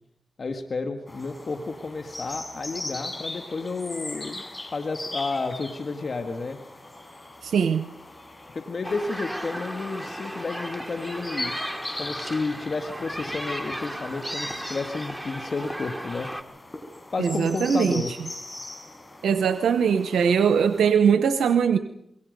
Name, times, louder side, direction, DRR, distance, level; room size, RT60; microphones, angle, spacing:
voice 1, 0.4-4.4 4.7-6.6 8.5-11.5 12.0-16.3 17.1-18.1, left 3 dB, 60° left, 6 dB, 1.9 m, -31 dB
sound 1, 1.1-20.9, left 2 dB, 30° left, 6.0 m, -40 dB
voice 2, 7.4-7.8 17.2-18.0 19.2-21.8, right 7 dB, 85° right, 9 dB, 0.8 m, -21 dB
sound 2, 8.8-16.4, equal, 5° right, 2.5 m, -35 dB
26.5 x 23.0 x 5.3 m, 0.77 s
supercardioid pair, 45°, 0 cm